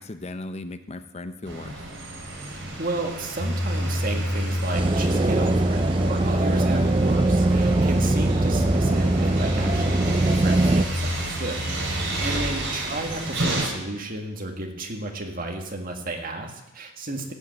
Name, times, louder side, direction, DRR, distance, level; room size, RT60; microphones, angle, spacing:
voice 1, 0.0-1.8 9.6-10.0 12.3-12.5, left 2 dB, 35° left, 10 dB, 0.7 m, -37 dB
sound 1, 1.4-13.7, right 2 dB, 70° right, 3.6 m, -32 dB
voice 2, 2.8-17.3, right 2 dB, 45° right, 2 dB, 1.8 m, -33 dB
sound 2, 3.4-12.6, equal, 80° left, 2.4 m, -27 dB
sound 3, 4.7-10.8, right 2 dB, 25° right, 0.4 m, -22 dB
16.0 x 5.6 x 7.9 m, 0.97 s
head